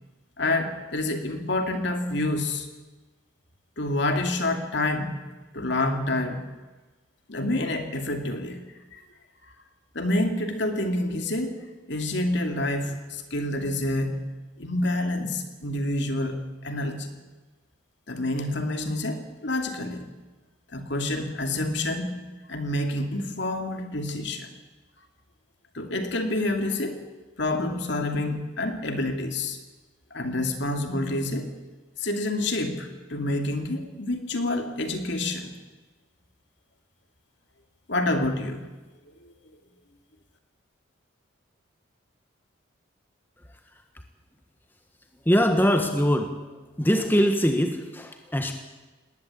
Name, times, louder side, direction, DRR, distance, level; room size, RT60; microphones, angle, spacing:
voice 1, 0.4-2.7 3.8-5.2 5.5-6.5 7.3-8.6 8.9-9.0 9.9-11.6 11.9-14.3 14.6-17.1 18.1-20.0 20.7-22.2 22.5-24.5 25.7-27.0 27.4-29.6 30.1-31.5 32.0-35.5 37.9-38.6, left 1 dB, 55° left, 5 dB, 2.7 m, -28 dB
voice 2, 45.2-46.3 46.8-48.5, equal, 10° left, 5 dB, 1.4 m, -22 dB
19.5 x 19.5 x 8.6 m, 1.2 s
head